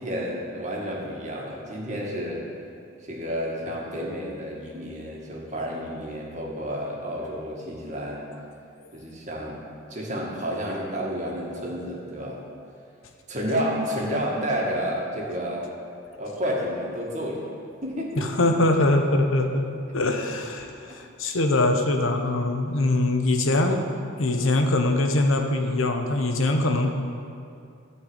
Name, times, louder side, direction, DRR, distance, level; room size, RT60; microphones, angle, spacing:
voice 1, 0.0-2.4 3.0-8.2 8.9-9.6 9.9-12.4 13.3-15.7 16.2-17.5 17.8-18.3 22.8-23.0, equal, 35° right, -3 dB, 1.9 m, -30 dB
voice 2, 18.1-19.7 19.9-23.8 24.2-26.9, left 2 dB, 90° left, 4 dB, 1.0 m, -23 dB
13.0 x 4.6 x 8.0 m, 2.4 s
head